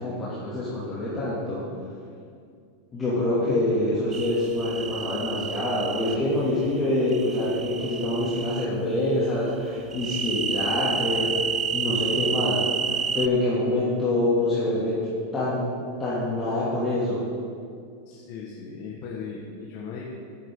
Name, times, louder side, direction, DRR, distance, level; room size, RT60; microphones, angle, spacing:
voice 1, 0.0-1.6 2.9-11.3 11.7-15.1 15.3-15.7 16.0-17.2, left 1 dB, 20° left, -9 dB, 2.5 m, -26 dB
sound 1, 4.1-6.2 7.1-8.7 9.9-13.3, right 6 dB, 25° right, 0.4 m, -29 dB
voice 2, 18.0-20.0, left 5 dB, 50° left, -3 dB, 1.5 m, -37 dB
11.0 x 9.1 x 3.8 m, 2.3 s
supercardioid pair, 125°, 0 cm